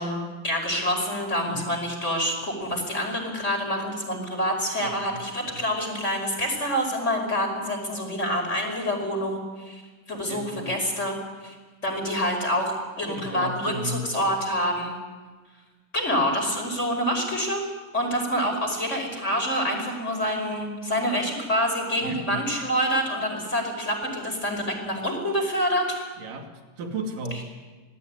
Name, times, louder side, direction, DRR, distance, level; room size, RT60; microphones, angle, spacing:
voice 1, 0.0-9.8 10.1-11.2 11.4-11.5 11.8-15.0 15.9-17.6 17.9-26.1 27.3-27.4, equal, 20° left, 3 dB, 5.4 m, -27 dB
voice 2, 4.8-5.2 5.4-5.6 10.3-10.7 13.1-14.1 22.0-22.4 26.2-26.5 26.8-27.4, right 2 dB, 75° right, 3 dB, 4.2 m, -34 dB
27.5 x 19.0 x 9.8 m, 1.4 s
omnidirectional pair, 3.8 m